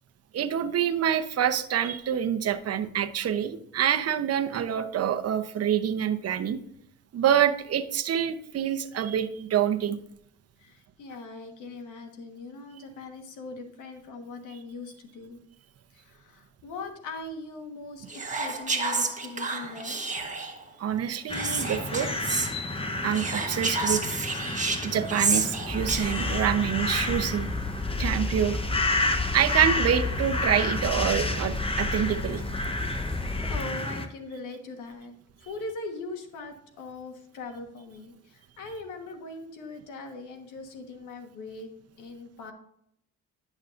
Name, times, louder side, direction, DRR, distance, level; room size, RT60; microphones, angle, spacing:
voice 1, 0.3-6.6 7.1-10.0 20.8-22.1 23.0-24.0 24.8-27.5 28.0-28.6 29.3-32.4, right 9 dB, 55° right, 8 dB, 0.8 m, -26 dB
voice 2, 10.6-15.4 15.9-20.4 23.7-25.3 33.1-35.1 35.4-41.7 42.0-42.5, left 3 dB, 90° left, 5 dB, 1.4 m, -41 dB
Whispering, 18.1-20.6 21.3-22.5 23.1-26.4, right 4 dB, 25° right, 1.3 m, -30 dB
sound 1, 21.3-34.1, left 2 dB, 20° left, 0.8 m, -31 dB
sound 2, 25.7-33.6, left 2 dB, 5° left, 0.3 m, -33 dB
10.5 x 6.4 x 2.5 m, 0.74 s
cardioid pair, 90°, 30 cm